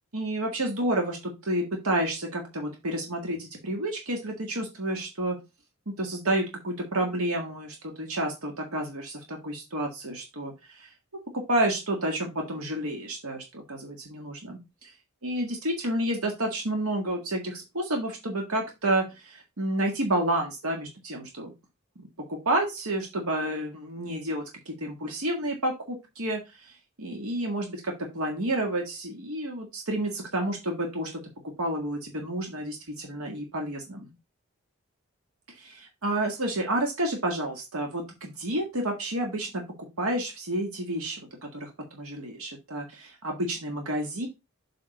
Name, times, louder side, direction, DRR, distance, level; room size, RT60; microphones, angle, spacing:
voice 1, 0.1-5.4 5.9-10.9 11.3-14.6 15.2-21.5 22.3-26.4 27.0-31.2 31.6-34.1 35.6-39.6 40.0-44.3, right 1 dB, 90° right, 1 dB, 1.8 m, -30 dB
7.7 x 4.1 x 4.0 m, 0.24 s
head